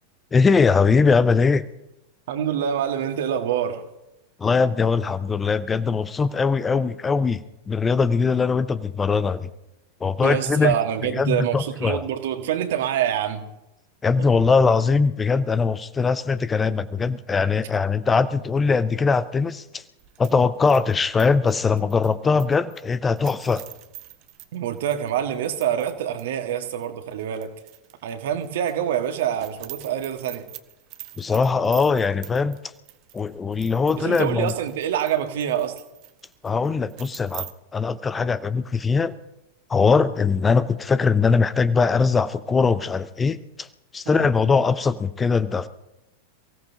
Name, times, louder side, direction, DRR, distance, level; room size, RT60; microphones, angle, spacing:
voice 1, 0.3-1.6 4.4-7.4 7.7-9.5 10.0-10.7 11.1-12.0 14.0-19.8 20.2-23.6 31.2-32.6 33.1-34.5 36.4-39.1 39.7-43.7 43.9-45.7, left 5 dB, 15° left, 14 dB, 0.6 m, -21 dB
voice 2, 2.3-3.9 10.2-13.5 14.2-14.3 24.5-27.5 28.0-30.5 33.9-35.7 44.1-44.3, right 10 dB, 55° right, 6 dB, 1.8 m, -26 dB
sound 1, 20.0-25.9 26.2-26.3 26.8-28.1 28.4-37.5, right 16 dB, 40° right, 0.9 m, -44 dB
28.5 x 17.0 x 2.9 m, 0.92 s
figure-of-eight pair, 90°, 0 cm